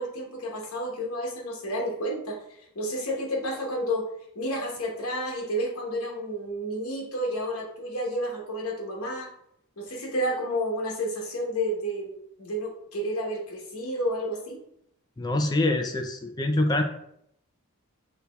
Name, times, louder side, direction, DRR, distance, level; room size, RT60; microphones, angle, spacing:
voice 1, 0.0-4.1 4.3-9.3 9.8-12.1 12.4-14.6, equal, 75° left, -1 dB, 1.1 m, -31 dB
voice 2, 15.2-16.8, left 1 dB, 20° left, 6 dB, 0.3 m, -25 dB
6.4 x 2.8 x 2.3 m, 0.74 s
head